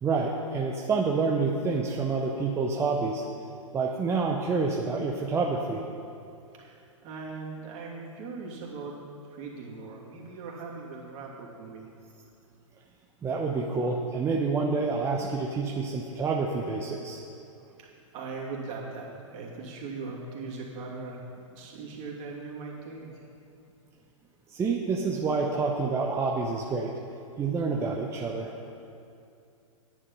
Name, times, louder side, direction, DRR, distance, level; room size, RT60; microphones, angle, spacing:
voice 1, 0.0-3.2 3.7-5.9 13.2-17.2 24.5-26.9 27.4-28.6, right 4 dB, 15° right, -1 dB, 0.7 m, -28 dB
voice 2, 6.5-9.0 9.3-11.9 17.6-17.9 18.1-21.2 21.6-23.3, right 4 dB, 40° right, -3 dB, 2.7 m, -40 dB
9.8 x 9.7 x 5.5 m, 2.6 s
hypercardioid pair, 115°, 17 cm